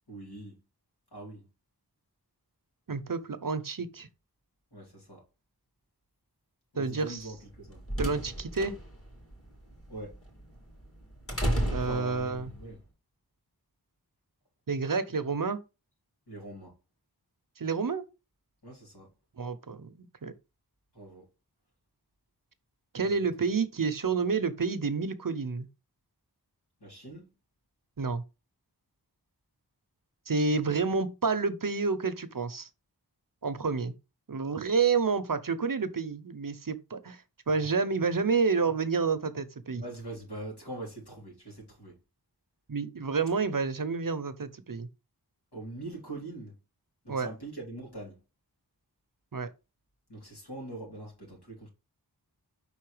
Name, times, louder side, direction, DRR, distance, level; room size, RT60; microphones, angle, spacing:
voice 1, 0.1-0.6 1.1-1.5 4.7-5.2 6.7-7.8 9.9-10.2 11.8-12.8 16.3-16.7 18.6-19.1 20.9-21.3 23.0-23.3 26.8-27.3 39.7-42.0 45.5-46.5 47.0-48.2 50.1-51.7, right 1 dB, 80° left, 3.0 m, -43 dB
voice 2, 2.9-4.1 6.8-7.2 8.0-8.7 11.7-12.5 14.7-15.6 17.6-18.0 19.4-20.3 22.9-25.7 28.0-28.2 30.3-32.7 33.4-33.9 34.3-37.2 37.5-39.8 42.7-44.9 47.1-47.3 49.3-49.5, right 4 dB, 55° right, 0.7 m, -29 dB
sound 1, 7.4-12.6, right 1 dB, 35° left, 2.5 m, -34 dB
5.3 x 3.9 x 4.8 m
wide cardioid pair, 45°, 39 cm